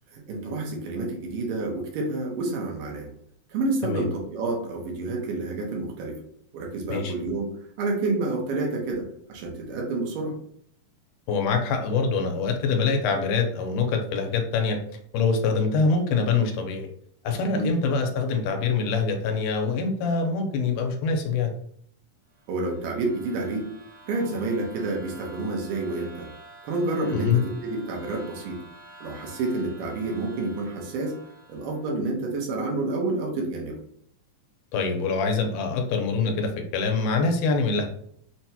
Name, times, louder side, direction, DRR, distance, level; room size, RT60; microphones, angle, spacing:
voice 1, 0.1-3.1 3.5-6.2 6.5-10.4 17.5-17.7 22.5-23.7 24.1-26.3 26.6-28.6 29.0-31.2 31.5-33.8, right 2 dB, 85° right, 0 dB, 2.6 m, -29 dB
voice 2, 11.3-14.8 15.1-16.9 17.2-21.5 27.1-27.4 34.7-37.9, left 4 dB, 85° left, 4 dB, 2.1 m, -24 dB
sound 1, 22.3-32.0, right 1 dB, 65° right, 2.3 m, -48 dB
6.2 x 2.2 x 2.8 m, 0.66 s
omnidirectional pair, 3.7 m